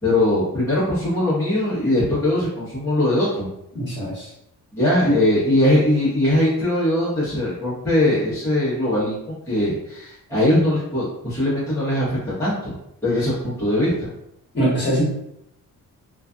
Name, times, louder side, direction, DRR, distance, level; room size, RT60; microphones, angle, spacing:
voice 1, 0.0-3.5 4.7-9.2 9.5-12.7 13.0-14.1, left 1 dB, 10° left, -13 dB, 0.9 m, -21 dB
voice 2, 3.7-4.3 5.0-5.1 14.5-15.0, equal, 30° left, -8 dB, 1.2 m, -22 dB
2.5 x 2.4 x 2.3 m, 0.79 s
wide cardioid pair, 175°, 34 cm